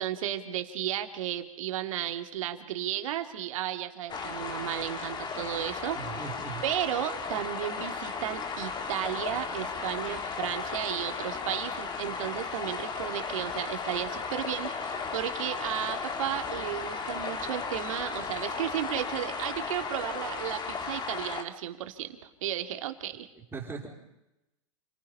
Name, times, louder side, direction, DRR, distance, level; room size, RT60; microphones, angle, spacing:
voice 1, 0.0-6.0 6.6-23.3, right 12 dB, 70° right, 7 dB, 2.5 m, -34 dB
sound 1, 4.1-21.4, left 5 dB, 25° left, 2.6 m, -35 dB
voice 2, 5.9-6.6 23.3-23.9, right 5 dB, 15° right, 1 dB, 4.9 m, -39 dB
29.0 x 19.0 x 5.6 m, 0.92 s
hypercardioid pair, 120°, 18 cm